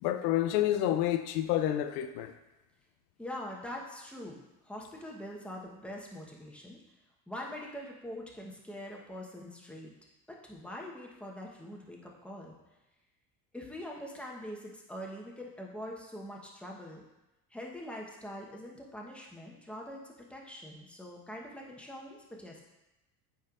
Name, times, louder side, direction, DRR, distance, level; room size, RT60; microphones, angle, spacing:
voice 1, 0.0-2.3, left 12 dB, 90° left, 9 dB, 0.6 m, -29 dB
voice 2, 3.2-6.8 7.3-9.9 10.3-12.6 13.5-17.0 17.5-22.6, left 1 dB, 5° left, -2 dB, 1.1 m, -43 dB
9.0 x 4.4 x 2.5 m, 0.98 s
supercardioid pair, 85°, 45 cm